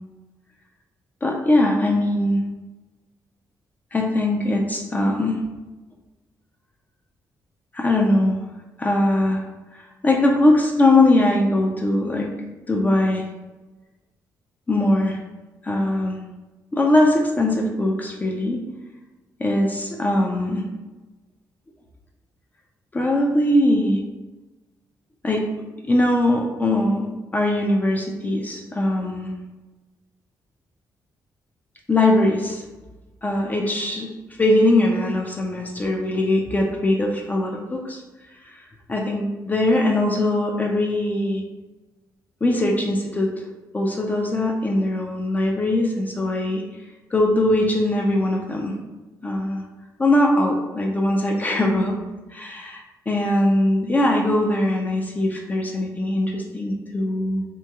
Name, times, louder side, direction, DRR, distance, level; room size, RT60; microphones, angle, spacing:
voice 1, 1.2-2.4 3.9-5.4 7.7-8.4 8.8-9.4 9.7-12.3 12.7-13.2 14.7-15.2 15.6-16.2 16.7-18.6 19.4-20.6 22.9-24.0 25.2-25.4 25.8-29.3 31.9-32.6 33.2-34.1 34.4-38.0 38.9-41.4 42.4-43.3 43.7-46.6 47.1-48.7 49.2-49.6 50.0-52.0 52.3-57.5, left 1 dB, 20° left, 0 dB, 0.3 m, -21 dB
2.9 x 2.6 x 2.3 m, 1.2 s
cardioid pair, 105°, 7 cm